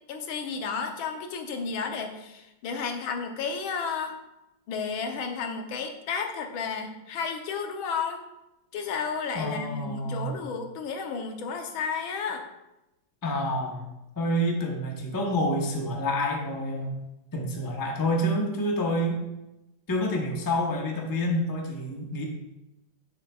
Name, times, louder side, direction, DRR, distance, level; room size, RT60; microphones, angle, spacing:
voice 1, 0.1-4.1 4.7-8.2 8.7-12.5, left 5 dB, 85° left, 4 dB, 1.7 m, -32 dB
voice 2, 9.3-10.4 13.2-13.9 14.2-17.0 17.3-19.2 19.9-22.2, equal, 20° left, 0 dB, 0.5 m, -28 dB
10.5 x 6.5 x 2.3 m, 0.93 s
omnidirectional pair, 2.2 m